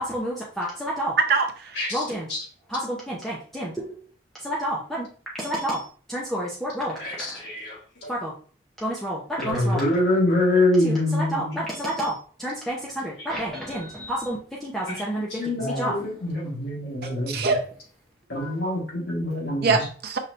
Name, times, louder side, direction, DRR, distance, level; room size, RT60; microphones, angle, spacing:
voice 1, 0.0-1.1 1.9-2.3 2.7-4.0 4.4-5.1 5.4-7.4 8.1-8.3 8.8-9.9 10.8-15.3 15.6-16.0 18.4-18.5, equal, ahead, -5 dB, 0.6 m, -30 dB
voice 2, 1.3-1.9 17.0-17.6 19.6-20.2, right 4 dB, 50° right, 5 dB, 0.6 m, -24 dB
voice 3, 7.0-8.1 9.4-11.6 14.9-15.0 15.3-17.5 18.3-19.8, left 1 dB, 55° left, -3 dB, 1.6 m, -25 dB
5.5 x 3.2 x 2.6 m, 0.43 s
head